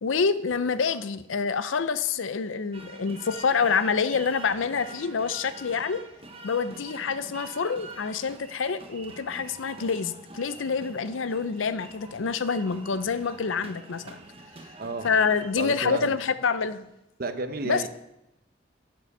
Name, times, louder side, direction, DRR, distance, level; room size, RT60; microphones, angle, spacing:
voice 1, 0.0-6.0 6.4-14.2 15.0-16.9 17.6-17.9, left 5 dB, 80° left, 13 dB, 0.6 m, -27 dB
sound 1, 2.7-15.5, right 2 dB, 30° right, 1.0 m, -45 dB
voice 2, 15.5-16.2 17.2-17.9, right 3 dB, 50° right, 9 dB, 0.8 m, -32 dB
11.5 x 7.5 x 5.4 m, 0.89 s
head